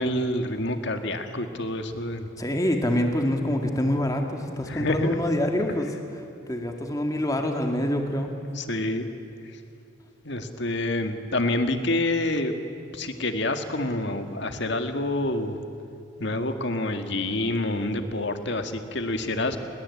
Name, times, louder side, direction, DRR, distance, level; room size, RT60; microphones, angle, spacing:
voice 1, 0.0-2.3 4.7-5.1 7.8-8.0 8.5-9.1 10.2-12.5 12.9-15.6 16.2-19.6, left 1 dB, 55° left, 7 dB, 2.0 m, -27 dB
voice 2, 2.4-5.9 6.5-8.3, left 1 dB, 15° left, 3 dB, 2.2 m, -26 dB
30.0 x 21.5 x 8.5 m, 2.7 s
head